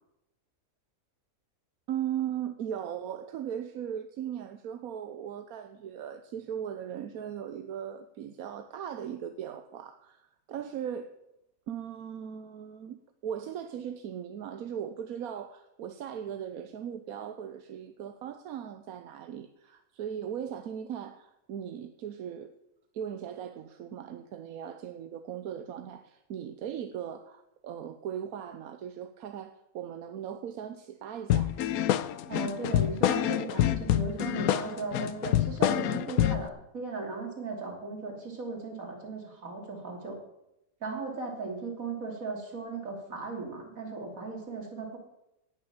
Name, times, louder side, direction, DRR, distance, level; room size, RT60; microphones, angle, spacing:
voice 1, 1.9-11.1 11.7-22.5 22.9-31.5, right 9 dB, 90° right, 9 dB, 1.2 m, -38 dB
sound 1, 31.3-36.5, left 12 dB, 90° left, 1.1 m, -27 dB
voice 2, 32.3-40.2 40.8-45.0, right 3 dB, 70° right, 1 dB, 3.4 m, -37 dB
17.5 x 7.0 x 7.1 m, 0.88 s
omnidirectional pair, 1.5 m